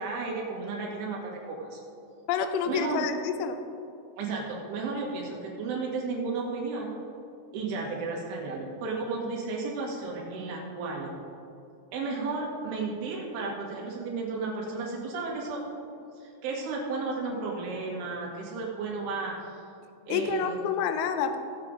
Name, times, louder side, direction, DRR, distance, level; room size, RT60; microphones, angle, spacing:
voice 1, 0.0-1.8 2.7-3.1 4.2-7.0 7.5-11.1 11.9-15.6 16.2-19.6 20.1-20.7, right 3 dB, 90° right, -2 dB, 4.4 m, -33 dB
voice 2, 2.3-3.6 20.1-21.4, left 6 dB, 80° left, 8 dB, 2.7 m, -28 dB
17.0 x 7.7 x 4.0 m, 2.6 s
omnidirectional pair, 5.3 m